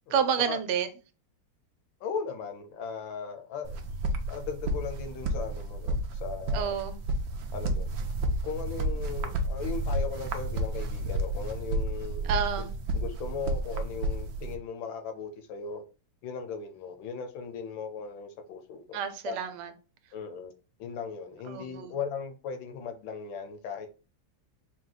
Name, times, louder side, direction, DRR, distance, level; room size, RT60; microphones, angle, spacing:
voice 1, 0.1-0.9 6.5-7.0 12.2-12.7 18.9-19.7 21.5-22.0, right 8 dB, 85° right, 1.5 m, -29 dB
voice 2, 2.0-3.8 4.3-6.8 7.5-7.9 8.4-12.3 12.9-15.8 16.2-19.0 19.3-19.4 20.1-20.5 20.8-23.9, left 6 dB, 75° left, 1.3 m, -37 dB
sound 1, 3.6-14.6, right 1 dB, 70° right, 1.1 m, -31 dB
4.6 x 2.2 x 3.8 m
omnidirectional pair, 2.3 m